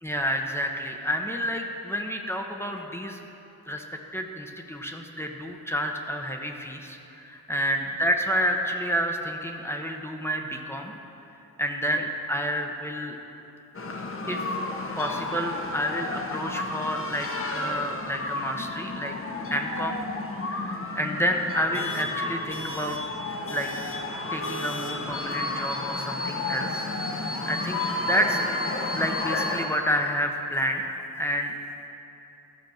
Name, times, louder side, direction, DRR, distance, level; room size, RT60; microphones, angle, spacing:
voice 1, 0.0-3.2 3.7-3.8 4.1-10.9 11.6-13.2 14.3-14.5 15.0-19.1 19.5-20.0 20.4-23.0 23.5-23.7 24.3-26.9 27.2-28.4 28.9-31.5, equal, 5° left, 2 dB, 0.9 m, -29 dB
sound 1, 13.7-29.7, left 2 dB, 40° left, 1.0 m, -32 dB
13.0 x 5.1 x 6.5 m, 2.9 s
cardioid pair, 80°, 33 cm